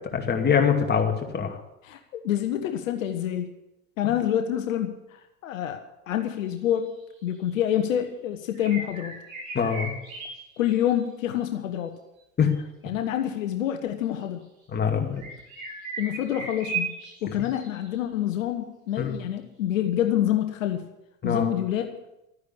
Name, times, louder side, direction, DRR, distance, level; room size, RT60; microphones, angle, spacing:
voice 1, 0.1-1.6 9.5-9.9 12.4-12.5 14.7-15.2 19.0-19.1 21.2-21.5, left 7 dB, 25° left, 2 dB, 2.5 m, -23 dB
voice 2, 1.8-3.5 4.0-4.9 5.4-9.2 10.6-11.9 12.8-14.4 16.0-16.9 17.2-20.8 21.2-22.0, left 11 dB, 70° left, 6 dB, 1.2 m, -27 dB
sound 1, 6.5-6.6 7.3-7.5 8.5-11.1 12.4-12.5 14.2-14.3 15.2-18.0, right 4 dB, 80° right, 4.6 m, -36 dB
12.5 x 9.6 x 8.5 m, 0.90 s
hypercardioid pair, 80°, 40 cm